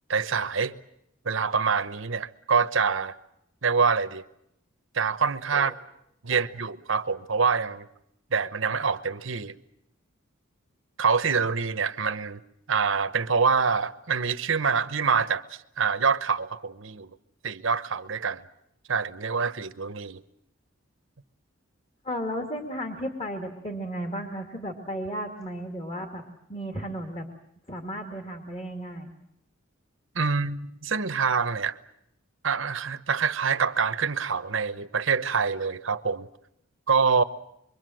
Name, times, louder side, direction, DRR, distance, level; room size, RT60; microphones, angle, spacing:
voice 1, 0.1-0.7 1.2-3.1 3.6-4.2 4.9-5.7 6.2-7.9 8.3-9.6 11.0-12.4 12.7-17.1 17.4-18.4 18.9-20.2 30.1-31.8 32.4-36.3 36.9-37.2, right 5 dB, 65° right, 1.0 m, -25 dB
voice 2, 22.0-26.2 26.5-27.3 27.7-29.1, equal, 30° left, 2.2 m, -34 dB
25.5 x 24.0 x 7.7 m
head